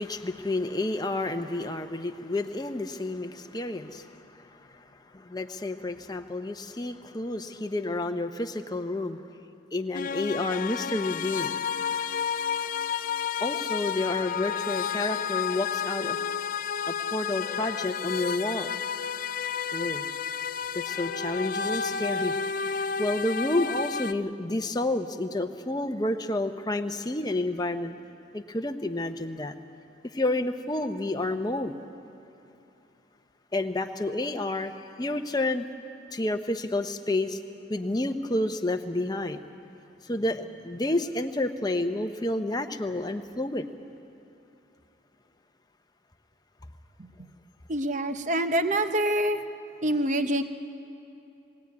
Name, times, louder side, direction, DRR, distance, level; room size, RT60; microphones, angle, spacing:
voice 1, 0.0-4.8 5.1-9.2 9.7-11.5 13.4-16.2 16.9-18.7 19.7-20.0 20.7-28.0 28.3-29.5 30.1-31.7 33.5-34.7 35.0-35.7 36.1-37.4 37.7-39.4 40.0-43.7, left 2 dB, 20° left, 6 dB, 0.8 m, -30 dB
sound 1, 9.9-24.1, left 7 dB, 45° left, 0.4 m, -31 dB
voice 2, 47.7-49.4 49.8-50.4, right 1 dB, 40° right, 8 dB, 0.8 m, -26 dB
21.0 x 16.0 x 9.4 m, 2.9 s
head